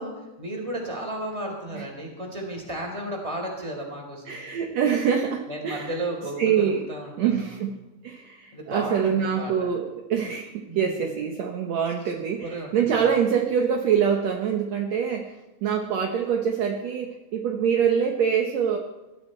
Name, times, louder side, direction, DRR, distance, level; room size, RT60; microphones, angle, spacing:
voice 1, 0.0-4.5 5.5-7.6 8.5-9.7 10.7-11.2 12.0-12.1 12.4-13.1, right 1 dB, 10° right, 0 dB, 3.6 m, -34 dB
voice 2, 4.3-6.0 6.4-6.9 7.2-7.7 8.0-18.8, right 7 dB, 65° right, 2 dB, 2.1 m, -25 dB
19.5 x 13.0 x 4.4 m, 1.1 s
omnidirectional pair, 3.6 m